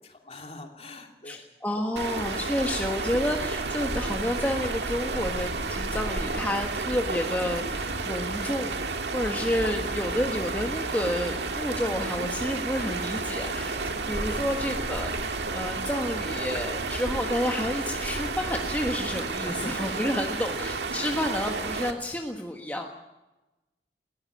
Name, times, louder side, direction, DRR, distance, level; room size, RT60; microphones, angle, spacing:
voice 1, 0.0-1.5 14.3-14.5 19.4-19.8 20.3-20.6, left 2 dB, 35° left, 3 dB, 2.8 m, -44 dB
voice 2, 1.3-13.8 14.1-22.9, left 1 dB, 10° left, 1 dB, 1.4 m, -30 dB
sound 1, 2.0-21.9, right 3 dB, 80° right, 1.9 m, -31 dB
20.0 x 16.0 x 9.9 m, 1.0 s
head